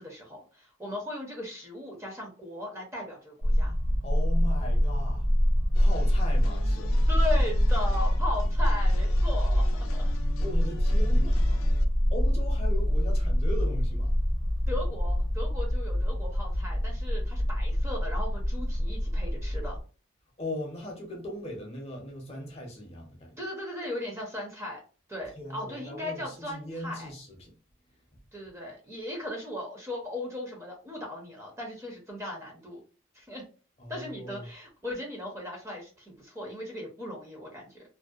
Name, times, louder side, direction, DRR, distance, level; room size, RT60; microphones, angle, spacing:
voice 1, 0.0-3.7 7.1-10.0 14.7-19.8 23.4-24.8 25.1-27.1 28.3-32.8 33.1-33.4 33.9-37.8, left 1 dB, 15° right, 0.6 m, -37 dB
sound 1, 3.4-19.8, equal, 65° right, 0.6 m, -25 dB
voice 2, 4.0-5.3 5.8-7.0 10.4-11.6 12.1-14.1 20.4-23.3 25.4-27.5 33.8-34.5, left 1 dB, 30° left, 0.6 m, -39 dB
sound 2, 5.7-11.9, left 5 dB, 85° left, 0.4 m, -46 dB
2.6 x 2.0 x 2.3 m
head